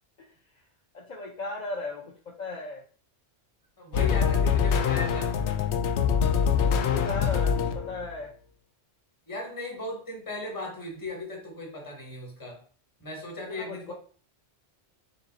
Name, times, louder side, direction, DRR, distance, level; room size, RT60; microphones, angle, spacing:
voice 1, 0.9-2.8 6.7-8.3 13.4-13.9, left 2 dB, 45° left, -2 dB, 0.7 m, -36 dB
voice 2, 3.8-5.4 9.3-12.6 13.0-13.9, left 2 dB, 20° left, 0 dB, 1.1 m, -37 dB
sound 1, 3.9-8.1, left 7 dB, 75° left, 0.8 m, -24 dB
3.7 x 2.8 x 4.0 m, 0.43 s
omnidirectional pair, 1.2 m